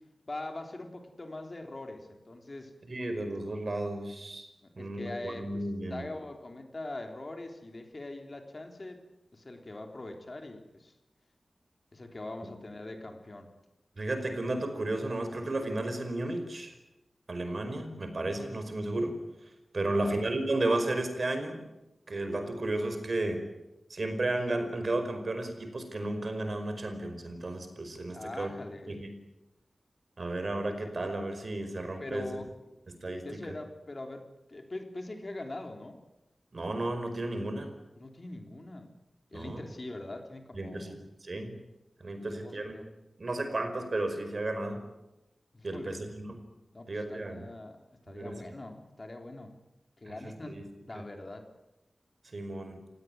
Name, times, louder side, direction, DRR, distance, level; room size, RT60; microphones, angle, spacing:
voice 1, 0.3-2.7 4.6-9.0 9.3-10.9 11.9-13.5 19.8-20.2 28.1-29.0 32.0-32.5 33.2-36.0 38.0-38.9 39.3-41.0 42.1-42.9 45.5-46.0 46.7-49.5 50.0-50.6 50.9-51.5, left 2 dB, 40° left, 4 dB, 3.5 m, -42 dB
voice 2, 2.9-4.5 4.8-6.0 14.0-16.7 17.3-19.1 19.7-21.6 22.1-23.4 23.9-28.5 28.9-29.1 30.2-32.3 33.0-33.4 36.5-37.7 39.3-39.6 40.5-41.0 41.3-41.5 42.0-42.8 43.2-44.8 45.6-46.3 46.9-47.4 48.1-48.3 50.1-50.2 50.5-50.6 50.9-51.0 52.3-52.8, right 2 dB, 50° right, 8 dB, 5.1 m, -33 dB
29.0 x 17.0 x 9.3 m, 0.96 s
wide cardioid pair, 100°, 0 cm